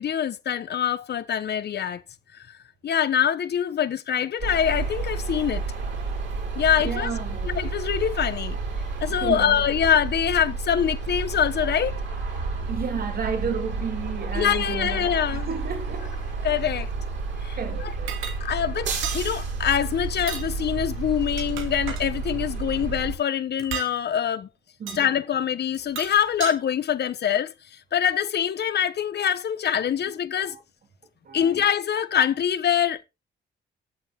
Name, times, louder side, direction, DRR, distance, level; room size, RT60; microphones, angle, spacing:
voice 1, 0.0-2.0 2.3-2.5 2.8-5.6 6.5-7.1 7.4-8.6 9.0-12.0 14.3-15.5 16.4-16.9 17.4-17.9 18.4-24.5 24.9-27.5 27.9-30.5 31.3-33.0, left 9 dB, 55° left, 1.4 m, -24 dB
sound 1, 4.4-23.1, right 4 dB, 65° right, 7.4 m, -30 dB
voice 2, 6.8-7.5 9.1-9.6 12.7-15.1 15.5-16.1 17.5-18.3 24.8-25.0 30.4-30.6 31.2-31.6, right 6 dB, 50° right, 2.8 m, -32 dB
sound 2, 18.1-18.4 19.0-19.2 20.2-20.5 21.2-22.1 23.6-23.9 24.9-25.0 25.7-26.6, right 9 dB, 85° right, 2.2 m, -34 dB
13.0 x 7.2 x 3.9 m
cardioid pair, 90°, 20 cm